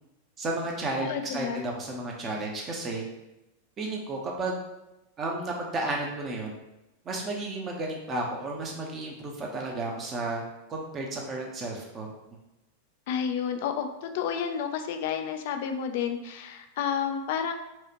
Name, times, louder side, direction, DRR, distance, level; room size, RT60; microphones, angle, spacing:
voice 1, 0.4-3.1 3.8-4.6 5.2-6.5 7.0-10.4 10.7-12.1, right 2 dB, 25° right, -1 dB, 0.9 m, -32 dB
voice 2, 1.0-1.6 13.1-17.5, left 7 dB, 50° left, 6 dB, 0.4 m, -30 dB
4.6 x 2.5 x 2.9 m, 0.95 s
figure-of-eight pair, 90°, 0 cm